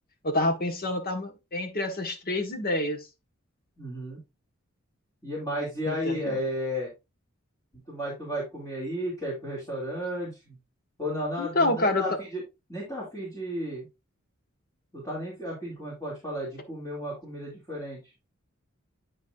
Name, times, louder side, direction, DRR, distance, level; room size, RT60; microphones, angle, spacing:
voice 1, 0.2-3.0 5.9-6.4 11.4-12.1, left 2 dB, 45° left, 1.4 m, -27 dB
voice 2, 3.8-4.2 5.2-6.9 7.9-10.6 11.0-12.4 12.7-13.8 14.9-18.1, equal, 20° left, 2.7 m, -33 dB
9.3 x 5.3 x 2.6 m
head